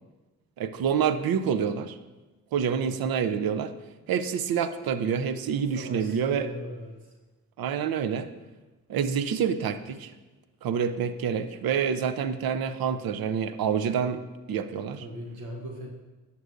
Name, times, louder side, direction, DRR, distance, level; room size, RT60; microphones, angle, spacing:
voice 1, 0.6-2.0 2.5-3.7 4.1-6.5 7.6-8.3 8.9-10.1 10.6-14.2 14.5-15.0, right 7 dB, 65° right, 11 dB, 0.6 m, -27 dB
voice 2, 5.7-7.1 14.9-15.9, equal, 80° right, 0 dB, 1.2 m, -39 dB
10.5 x 7.0 x 2.6 m, 1.2 s
supercardioid pair, 50°, 39 cm